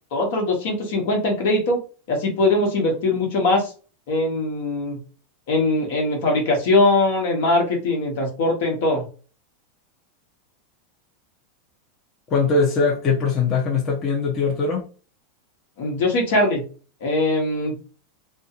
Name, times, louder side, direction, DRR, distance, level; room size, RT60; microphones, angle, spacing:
voice 1, 0.1-1.8 2.1-3.6 4.1-5.0 5.5-9.0 15.8-16.6 17.0-17.7, left 2 dB, 65° left, 1 dB, 1.1 m, -21 dB
voice 2, 12.3-14.8, left 4 dB, 35° left, -2 dB, 0.8 m, -21 dB
2.7 x 2.5 x 2.4 m, 0.36 s
hypercardioid pair, 100°, 0 cm